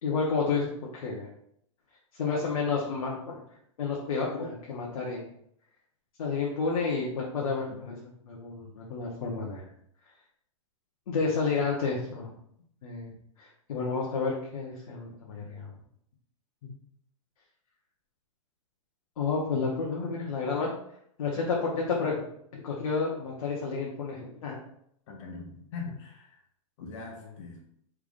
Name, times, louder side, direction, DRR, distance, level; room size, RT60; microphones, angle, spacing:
voice 1, 0.0-0.7 1.0-1.3 2.2-3.4 3.8-5.2 6.2-9.7 11.1-12.3 12.8-15.7 19.2-20.8 21.2-22.2 22.5-24.6, left 4 dB, 80° left, -3 dB, 1.1 m, -30 dB
voice 2, 25.1-26.4 26.8-27.6, left 4 dB, 60° left, 1 dB, 1.3 m, -41 dB
5.0 x 3.5 x 2.5 m, 0.70 s
hypercardioid pair, 140°, 18 cm